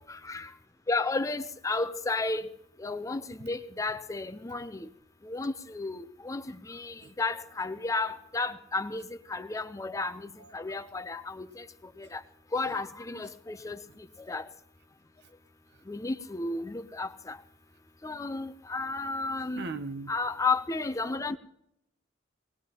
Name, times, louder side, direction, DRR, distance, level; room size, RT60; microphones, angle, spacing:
voice 1, 0.1-0.5 0.9-2.5 2.8-4.9 5.2-11.7 12.0-12.2 12.5-13.8 14.3-14.5 15.9-17.4 18.0-19.7 20.1-21.4, left 3 dB, 15° left, 0.5 m, -33 dB
voice 2, 19.6-20.1, right 3 dB, 60° right, 0.7 m, -38 dB
21.5 x 18.5 x 2.9 m
head